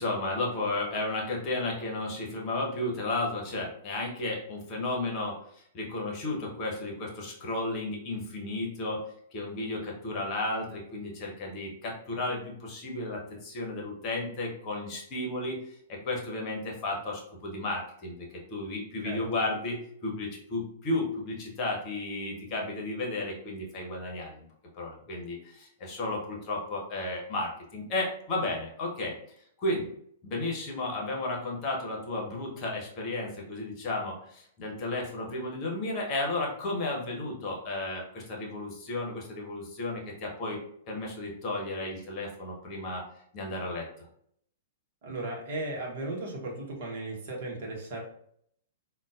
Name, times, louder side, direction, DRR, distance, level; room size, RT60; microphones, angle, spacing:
voice 1, 0.0-9.0 9.3-24.5 24.7-29.2 29.6-29.9 30.2-40.6 40.9-43.0 43.3-43.9, left 2 dB, 35° left, -1 dB, 1.0 m, -33 dB
voice 2, 45.0-48.0, right 2 dB, 50° right, -1 dB, 1.0 m, -36 dB
3.8 x 2.3 x 2.4 m, 0.68 s
figure-of-eight pair, 110°, 0 cm